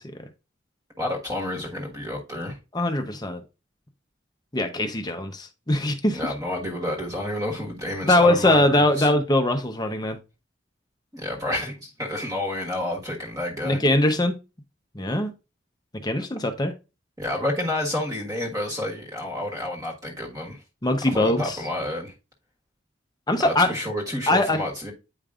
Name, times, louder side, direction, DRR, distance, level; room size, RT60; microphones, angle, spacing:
voice 1, 1.0-2.6 6.1-9.1 11.1-13.8 17.2-20.6 21.1-22.1 23.4-24.9, left 1 dB, 20° right, 1.5 m, -30 dB
voice 2, 2.7-3.4 4.5-6.2 8.0-10.2 13.6-14.3 14.9-15.3 16.0-16.7 20.8-21.6 23.3-23.7 24.3-24.6, left 1 dB, 20° left, 0.7 m, -21 dB
8.9 x 5.2 x 2.4 m
head